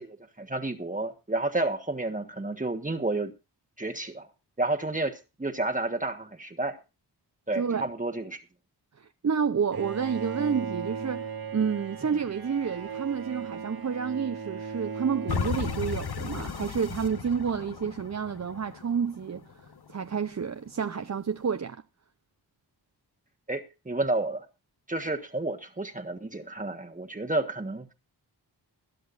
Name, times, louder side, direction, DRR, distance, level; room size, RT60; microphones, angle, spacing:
voice 1, 0.0-3.3 3.8-4.3 4.6-6.8 7.5-8.4 23.5-24.5 24.9-27.9, right 2 dB, 20° right, 1.4 m, -31 dB
voice 2, 7.6-7.9 9.0-19.4 19.9-21.8, right 6 dB, 40° right, 0.7 m, -30 dB
Bowed string instrument, 9.7-16.5, right 6 dB, 60° right, 1.9 m, -37 dB
sound 1, 15.3-20.3 20.8-20.9, left 6 dB, 65° left, 1.2 m, -35 dB
21.0 x 11.5 x 2.6 m
wide cardioid pair, 75°, 42 cm